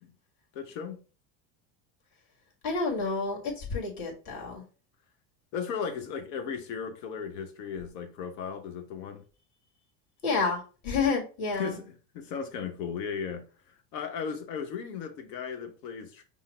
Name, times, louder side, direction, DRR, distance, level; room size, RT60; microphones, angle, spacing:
voice 1, 0.5-1.0 5.5-9.2 11.5-11.9 12.1-16.2, left 6 dB, 75° left, 1.0 m, -36 dB
voice 2, 2.6-4.6 10.2-11.8, left 4 dB, 55° left, 1.9 m, -29 dB
5.5 x 2.0 x 3.1 m
supercardioid pair, 100°, 49 cm